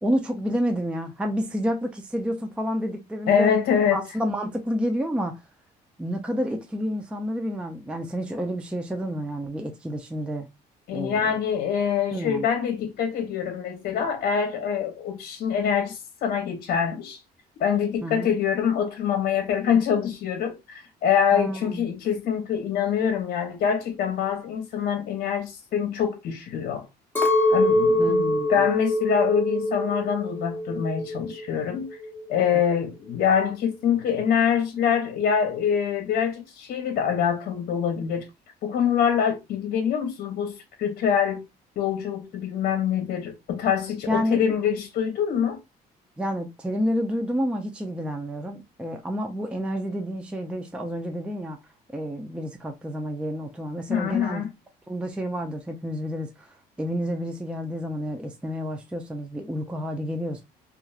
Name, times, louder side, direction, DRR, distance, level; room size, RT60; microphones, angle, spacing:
voice 1, 0.0-3.5 3.9-5.4 6.0-10.5 10.9-11.4 12.1-12.5 18.0-18.3 21.3-21.9 28.0-28.6 44.1-44.4 46.2-51.6 51.9-54.4 54.9-60.4, equal, 5° right, 0.4 m, -29 dB
voice 2, 3.3-4.0 10.9-17.2 17.6-26.9 27.5-31.9 32.3-38.3 38.6-41.4 41.8-45.6 53.9-54.5, left 7 dB, 60° left, 0.8 m, -25 dB
Chink clink, 27.2-31.5 31.8-32.6, left 1 dB, 10° left, 0.9 m, -24 dB
3.0 x 2.4 x 2.3 m
cardioid pair, 110°, 17 cm